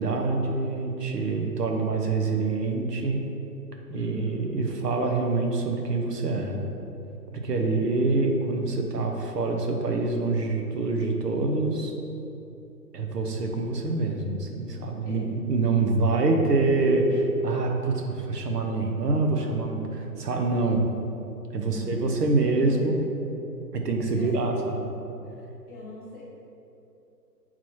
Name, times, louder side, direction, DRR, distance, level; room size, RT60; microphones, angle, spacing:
voice 1, 0.0-3.3 3.9-6.7 7.3-11.9 12.9-20.8 21.5-23.0 23.7-24.9, right 3 dB, 70° right, 2 dB, 1.1 m, -26 dB
voice 2, 3.9-4.5 7.6-8.1 15.0-15.4 21.6-22.9 24.1-24.5 25.7-26.3, left 2 dB, ahead, -33 dB, 0.8 m, -41 dB
6.1 x 4.0 x 4.6 m, 2.8 s
hypercardioid pair, 170°, 49 cm